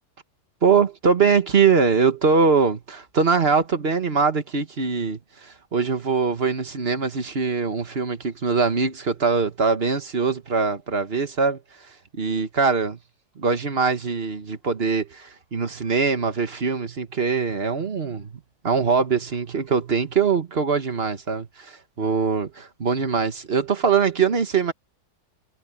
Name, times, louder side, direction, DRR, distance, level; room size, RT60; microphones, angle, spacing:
voice 1, 0.6-11.6 12.1-13.0 13.4-24.7, right 5 dB, 40° right, 1.6 m, -22 dB
omnidirectional pair, 1.7 m